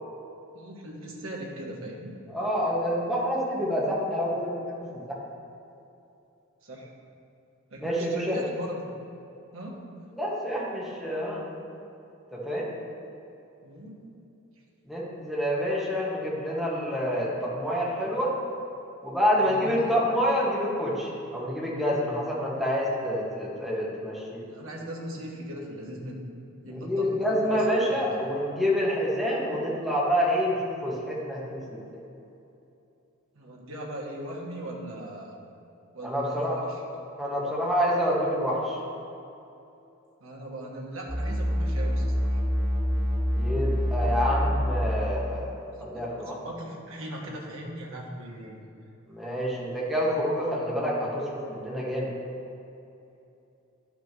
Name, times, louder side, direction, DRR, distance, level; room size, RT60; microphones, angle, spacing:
voice 1, 0.5-2.1 6.6-6.9 7.7-8.9 9.5-9.9 13.6-14.1 19.4-19.9 24.5-26.3 26.6-28.2 33.3-35.4 35.9-36.8 40.2-42.4 45.6-48.6, right 1 dB, 65° right, -2 dB, 1.4 m, -39 dB
voice 2, 2.3-5.2 7.7-8.4 10.1-11.5 12.3-12.7 14.8-18.3 19.0-24.4 26.7-32.0 36.0-36.6 37.2-38.8 43.4-46.3 49.1-52.1, equal, ahead, -7 dB, 1.6 m, -27 dB
sound 1, 41.1-45.2, equal, 15° right, 1.5 m, -26 dB
11.5 x 5.9 x 3.0 m, 2.8 s
head